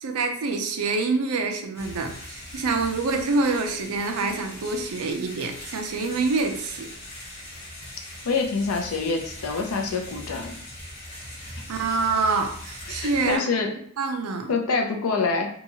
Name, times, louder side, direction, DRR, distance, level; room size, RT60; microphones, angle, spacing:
voice 1, 0.0-6.9 11.7-13.7 14.0-14.5, right 3 dB, 75° right, 5 dB, 0.5 m, -26 dB
sound 1, 1.7-13.4, left 1 dB, 50° left, 1.0 m, -41 dB
voice 2, 8.2-10.6 12.9-13.7 14.5-15.5, left 4 dB, 70° left, 3 dB, 0.5 m, -26 dB
2.8 x 2.3 x 2.8 m, 0.62 s
head